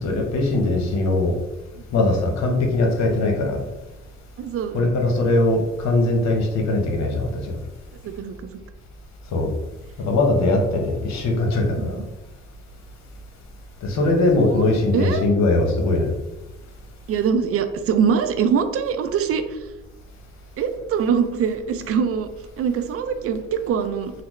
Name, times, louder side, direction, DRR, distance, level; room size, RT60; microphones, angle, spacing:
voice 1, 0.0-1.3 1.9-3.6 4.7-7.6 9.3-9.5 10.0-12.0 13.8-16.1, left 2 dB, 65° left, 2 dB, 0.8 m, -20 dB
voice 2, 4.4-5.0 8.0-8.6 11.8-12.0 14.5-14.6 14.9-15.3 17.1-19.6 20.6-22.3 22.6-24.1, right 7 dB, 50° right, 8 dB, 0.4 m, -23 dB
4.0 x 2.0 x 3.0 m, 0.99 s
supercardioid pair, 60°, 30 cm